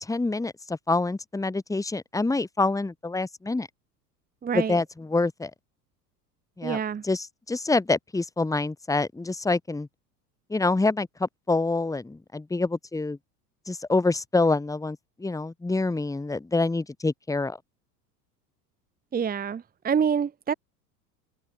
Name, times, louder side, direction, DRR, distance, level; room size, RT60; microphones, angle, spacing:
voice 1, 0.0-3.7 4.5-5.5 6.6-6.8 7.0-9.9 10.5-13.2 13.7-17.6, left 3 dB, 5° left, 1.6 m, -26 dB
voice 2, 4.4-4.8 6.6-7.0 19.1-20.5, right 7 dB, 20° right, 1.2 m, -27 dB
hypercardioid pair, 80°, 48 cm